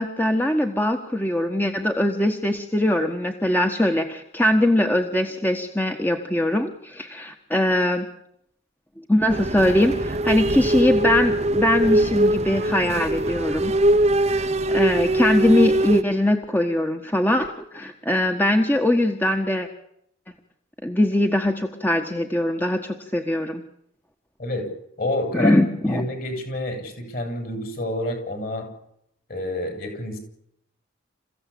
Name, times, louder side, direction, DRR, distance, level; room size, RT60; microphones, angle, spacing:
voice 1, 0.0-8.1 9.1-13.7 14.2-19.7 20.8-23.6 25.3-26.0, left 1 dB, 10° left, 4 dB, 1.5 m, -21 dB
sound 1, 9.3-16.0, right 1 dB, 35° right, 0.9 m, -22 dB
voice 2, 25.0-25.5 25.8-28.7 29.3-30.2, left 1 dB, 45° left, 6 dB, 7.6 m, -28 dB
29.0 x 16.0 x 8.6 m, 0.75 s
head